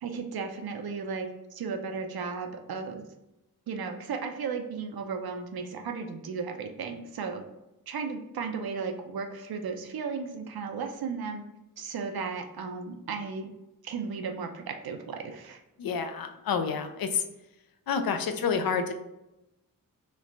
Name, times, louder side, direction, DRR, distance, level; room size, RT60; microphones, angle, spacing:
voice 1, 0.0-3.1 3.7-7.4 7.9-11.4 11.8-13.5 13.8-15.6, right 5 dB, 85° right, 4 dB, 0.6 m, -35 dB
voice 2, 15.8-17.2 17.9-18.9, left 6 dB, 75° left, 7 dB, 0.5 m, -29 dB
3.3 x 3.1 x 3.8 m, 0.94 s
wide cardioid pair, 140°, 36 cm